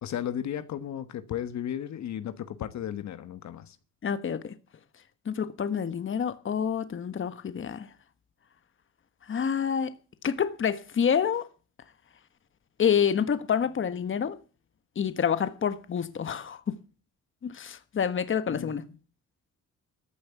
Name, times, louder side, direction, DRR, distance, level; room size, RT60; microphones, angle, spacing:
voice 1, 0.0-3.8 18.5-18.7, left 10 dB, 65° left, 1.4 m, -34 dB
voice 2, 4.0-4.5 5.2-7.9 9.3-9.9 10.2-11.5 12.8-14.4 14.9-16.7 17.4-18.8, left 7 dB, 40° left, 1.4 m, -28 dB
14.5 x 8.6 x 8.3 m
cardioid pair, 90°, 30 cm